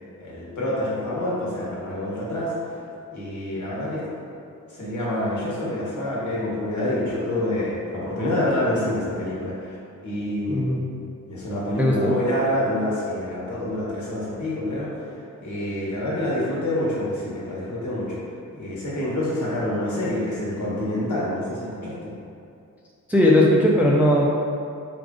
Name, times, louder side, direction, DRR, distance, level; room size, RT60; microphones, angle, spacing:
voice 1, 0.2-2.8 3.1-4.1 4.7-9.7 10.0-10.6 11.3-18.2 18.5-22.1, left 1 dB, 65° left, -6 dB, 1.3 m, -27 dB
voice 2, 10.5-10.8 11.8-12.1 23.1-24.2, left 1 dB, 5° right, -4 dB, 0.3 m, -18 dB
4.9 x 2.5 x 3.7 m, 2.5 s
wide cardioid pair, 135°, 31 cm